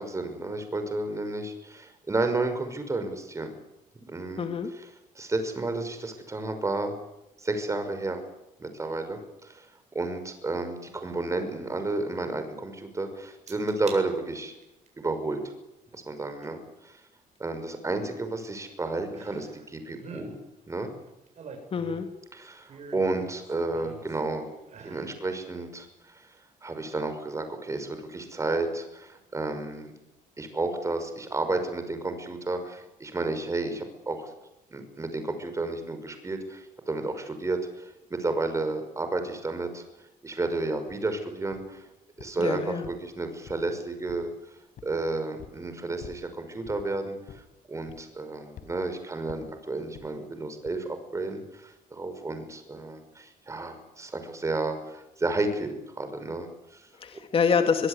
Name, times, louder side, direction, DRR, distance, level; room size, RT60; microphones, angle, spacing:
voice 1, 0.0-3.5 4.1-4.5 5.2-7.0 7.4-8.2 8.6-14.5 15.0-15.5 15.9-17.0 17.4-20.4 20.7-20.9 22.3-24.5 24.8-26.4 26.6-29.9 30.4-34.3 34.7-39.8 40.2-41.8 42.2-44.3 44.8-47.4 47.7-56.9, right 2 dB, 20° right, 8 dB, 5.7 m, -32 dB
voice 2, 4.4-4.7 21.7-22.1 42.4-42.9 57.0-57.9, left 6 dB, 40° left, 6 dB, 2.4 m, -26 dB
sound 1, 13.5-14.0 14.5-14.9 16.4-16.5 19.1-19.7 19.9-20.3 21.1-22.1 22.7-24.2 24.6-25.1 25.6-25.7, right 5 dB, 50° right, 8.0 m, -45 dB
sound 2, 40.9-41.0 41.5-41.8 42.2-42.5 42.8-43.7 44.1-44.4 44.8-45.0 45.4-45.6 46.0-46.3 46.6-46.9 47.3-47.5 47.9-48.2 48.6-48.8 49.3-49.5 49.9-50.1 50.6-50.8, left 8 dB, 70° left, 4.4 m, -47 dB
23.5 x 22.5 x 9.9 m, 0.90 s
cardioid pair, 130°, 15 cm